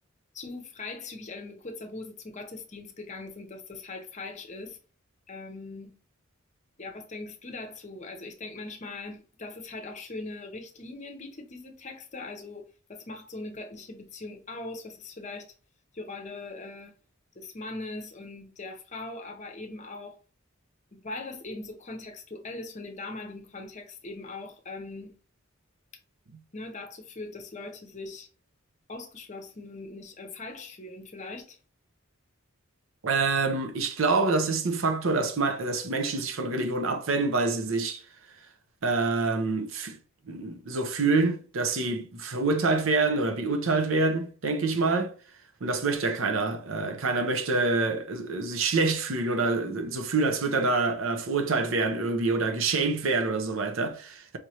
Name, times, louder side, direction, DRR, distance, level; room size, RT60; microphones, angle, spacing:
voice 1, 0.3-4.8 5.3-6.0 6.8-15.5 15.9-17.0 17.4-20.2 20.9-25.2 26.5-28.3 28.9-31.6, left 2 dB, 35° left, 0.7 m, -40 dB
voice 2, 33.0-38.0 38.8-40.0 40.3-45.1 45.6-54.4, right 3 dB, 70° right, 0.7 m, -26 dB
5.0 x 3.1 x 2.8 m
head